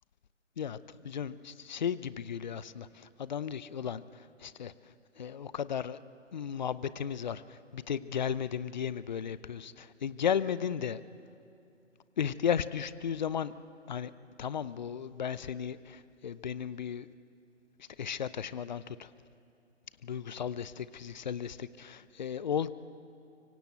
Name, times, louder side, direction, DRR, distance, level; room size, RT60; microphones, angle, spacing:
voice 1, 1.0-4.0 4.4-4.7 5.2-6.0 6.3-11.0 12.2-13.5 13.9-14.1 14.4-17.1 18.0-19.1 20.0-22.7, left 8 dB, 35° left, 16 dB, 0.7 m, -34 dB
24.5 x 24.5 x 8.0 m, 2.7 s
figure-of-eight pair, 140°, 37 cm